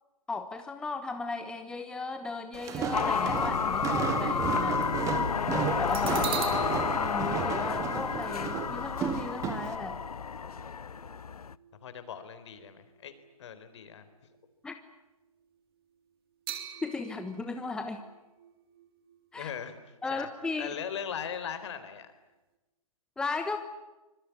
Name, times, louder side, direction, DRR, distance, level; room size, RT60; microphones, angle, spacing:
voice 1, 0.3-4.9 5.8-6.3 7.0-10.0 14.6-14.7 16.8-18.0 19.3-19.5 20.0-20.7 23.2-23.6, left 3 dB, 5° left, 7 dB, 1.2 m, -36 dB
Walk footsteps, 2.5-9.8, right 7 dB, 15° right, 1.9 m, -34 dB
sound 1, 2.9-11.5, left 6 dB, 85° left, 0.8 m, -31 dB
sound 2, 5.9-13.3 13.6-13.8 16.5-20.2 20.6-20.7, right 10 dB, 40° right, 3.5 m, -44 dB
voice 2, 11.8-13.1 13.4-14.1 19.3-20.3 20.6-22.1, left 8 dB, 50° left, 11 dB, 4.2 m, -39 dB
25.5 x 22.0 x 9.8 m, 1.0 s
hypercardioid pair, 145°, 19 cm